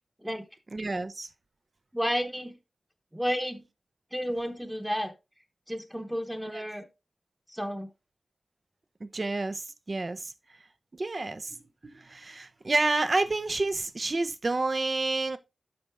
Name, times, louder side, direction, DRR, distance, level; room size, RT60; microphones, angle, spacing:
voice 1, 0.7-1.3 6.5-6.7 9.0-10.3 10.9-11.6 11.8-15.4, right 2 dB, 45° right, 0.6 m, -29 dB
voice 2, 1.9-2.6 3.1-3.7 4.1-5.1 5.7-6.9 7.5-7.9, equal, 5° right, 1.0 m, -31 dB
7.9 x 5.3 x 3.5 m
wide cardioid pair, 75°, 0 cm